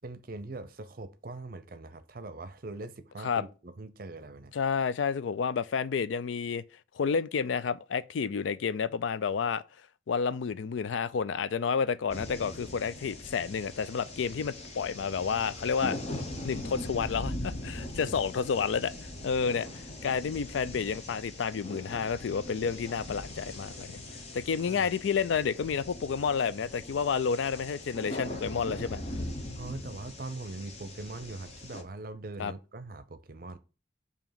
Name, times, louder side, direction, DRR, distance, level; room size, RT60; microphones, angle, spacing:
voice 1, 0.0-4.5 18.0-18.2 24.6-24.9 29.6-33.6, right 2 dB, 50° right, 0.6 m, -42 dB
voice 2, 4.5-6.6 6.9-9.6 10.1-16.0 16.4-18.9 19.2-23.9 24.3-29.0 32.4-32.5, left 6 dB, 80° left, 0.4 m, -30 dB
sound 1, 12.1-31.8, left 1 dB, 35° left, 1.0 m, -41 dB
7.0 x 2.9 x 5.7 m
head